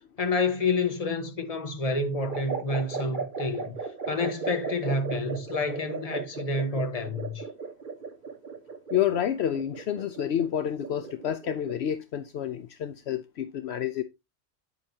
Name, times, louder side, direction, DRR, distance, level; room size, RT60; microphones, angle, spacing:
voice 1, 0.2-3.8 4.1-7.5, left 3 dB, 35° left, 1.3 m, -29 dB
sound 1, 2.3-11.9, right 5 dB, 45° right, 1.4 m, -36 dB
voice 2, 8.9-14.0, left 10 dB, 70° left, 0.9 m, -29 dB
8.9 x 8.1 x 2.8 m
omnidirectional pair, 1.2 m